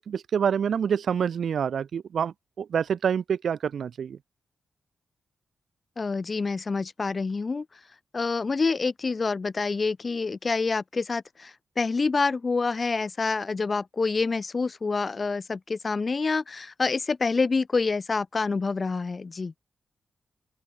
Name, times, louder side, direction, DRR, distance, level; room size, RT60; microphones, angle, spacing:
voice 1, 0.0-4.2, right 7 dB, 65° right, 0.5 m, -27 dB
voice 2, 6.0-7.6 8.1-19.5, left 4 dB, 30° left, 0.3 m, -27 dB
wide cardioid pair, 155°, 0 cm